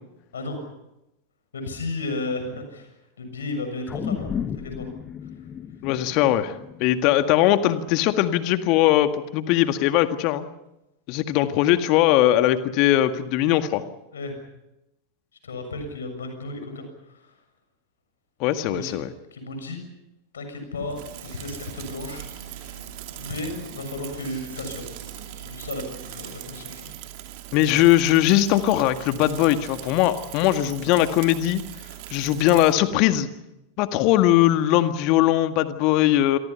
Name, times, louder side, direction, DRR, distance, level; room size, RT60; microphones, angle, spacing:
voice 1, 1.5-2.9 3.2-4.9 14.1-14.4 15.4-17.3 18.6-19.0 19.3-19.8 20.3-22.2 23.1-24.8 25.3-26.9 27.2-27.3, left 2 dB, 70° left, 7 dB, 6.8 m, -34 dB
sound 1, 3.9-8.4 8.8-8.9, left 8 dB, 25° left, 1.4 m, -34 dB
voice 2, 5.8-6.6 6.8-10.5 11.1-13.8 18.4-19.1 27.5-31.6 32.1-33.3 33.8-36.4, left 13 dB, 40° left, 9 dB, 1.8 m, -20 dB
Hands, 20.7-26.8, right 4 dB, 65° right, 7.8 m, -45 dB
Bicycle / Mechanisms, 20.9-32.7, right 13 dB, 45° right, 2.7 m, -40 dB
28.0 x 23.5 x 5.7 m, 0.91 s
figure-of-eight pair, 90°, 0 cm